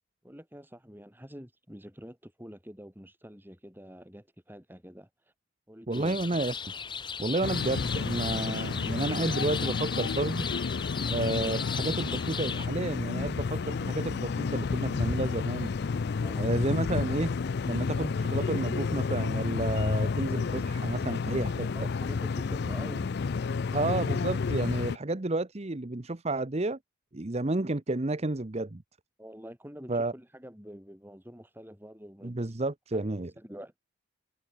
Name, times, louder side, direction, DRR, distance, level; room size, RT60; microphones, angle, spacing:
voice 1, 0.2-5.1 5.7-6.2 16.2-16.5 21.7-23.1 29.2-32.5 32.9-33.7, equal, 10° right, 5.6 m, -46 dB
sound 1, 5.9-12.7, left 6 dB, 25° left, 0.9 m, -37 dB
voice 2, 5.9-6.5 7.2-10.5 11.1-15.7 16.4-17.3 17.7-21.7 23.7-26.8 27.1-28.8 29.9-30.1 32.2-33.3, right 2 dB, 30° right, 0.8 m, -31 dB
sound 2, 7.4-25.0, left 5 dB, 55° left, 0.4 m, -31 dB
head